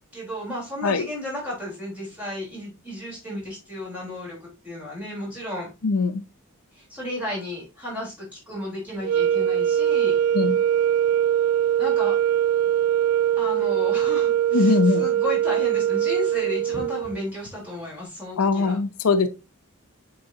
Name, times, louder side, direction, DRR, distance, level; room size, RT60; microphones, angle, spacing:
voice 1, 0.1-4.4 4.6-5.7 6.7-10.2 11.8-12.1 13.4-18.8, left 1 dB, 5° right, 3.6 m, -33 dB
voice 2, 5.8-6.2 10.3-10.6 14.5-15.0 18.4-19.3, left 4 dB, 85° left, 0.6 m, -21 dB
sound 1, 9.0-17.2, right 10 dB, 80° right, 0.4 m, -22 dB
7.8 x 4.6 x 2.7 m
head